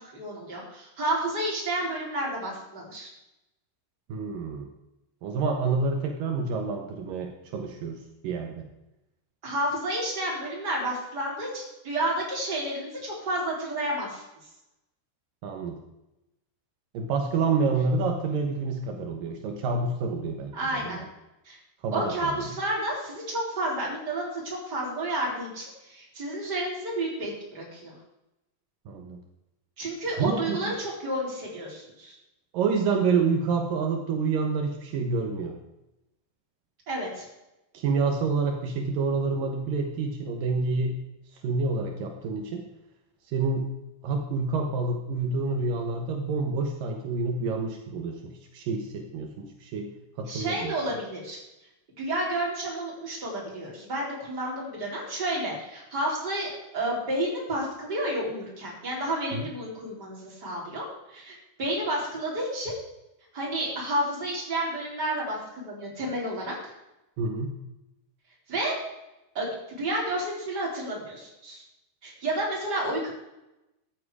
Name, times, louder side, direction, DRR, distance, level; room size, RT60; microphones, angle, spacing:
voice 1, 0.0-3.1 9.4-14.2 20.5-21.0 21.4-21.6 21.9-27.9 29.8-32.1 36.9-37.3 50.3-51.4 52.0-62.7 63.3-66.7 68.5-68.8 69.3-71.6 72.0-73.1, right 1 dB, 20° right, -3 dB, 4.1 m, -31 dB
voice 2, 4.1-4.7 5.2-8.0 8.2-8.6 15.4-15.8 16.9-21.0 21.8-22.5 28.9-29.2 30.2-30.8 32.5-35.5 37.7-40.9 41.4-42.6 43.3-43.7 44.0-49.9 50.2-50.7 59.3-59.5 67.2-67.5, right 4 dB, 80° right, 3 dB, 1.9 m, -28 dB
14.0 x 10.5 x 4.9 m, 0.92 s
omnidirectional pair, 5.8 m